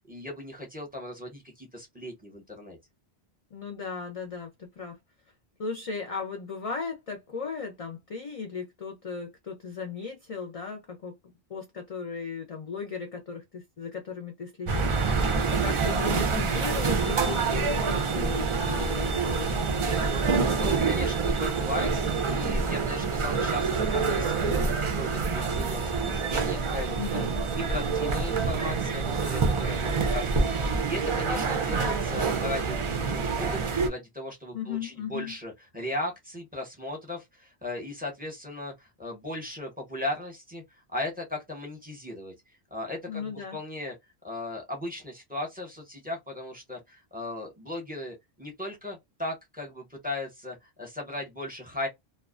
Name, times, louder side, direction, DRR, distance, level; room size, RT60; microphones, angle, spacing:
voice 1, 0.1-2.8 20.5-24.3 24.6-27.3 27.5-40.6 40.9-42.3 42.7-43.9 44.2-51.9, left 1 dB, 10° right, 0.8 m, -37 dB
voice 2, 3.5-5.0 5.6-11.1 11.5-19.6 27.0-27.4 34.5-35.3 43.1-43.6, left 5 dB, 45° left, 0.5 m, -36 dB
sound 1, 14.7-33.9, right 4 dB, 50° right, 0.4 m, -27 dB
2.3 x 2.2 x 2.4 m
omnidirectional pair, 1.1 m